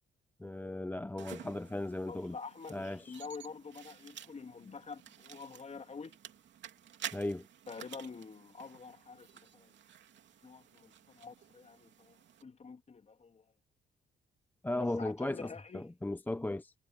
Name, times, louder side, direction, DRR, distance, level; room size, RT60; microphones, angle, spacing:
voice 1, 0.4-2.4 2.7-3.2 7.1-7.4 14.6-16.7, left 1 dB, 10° left, 0.5 m, -36 dB
sound 1, 1.2-12.4, right 9 dB, 65° right, 2.8 m, -51 dB
voice 2, 2.1-6.2 7.7-9.7 10.4-13.4 14.8-15.9, left 5 dB, 35° left, 3.2 m, -47 dB
cardioid pair, 90°, 20 cm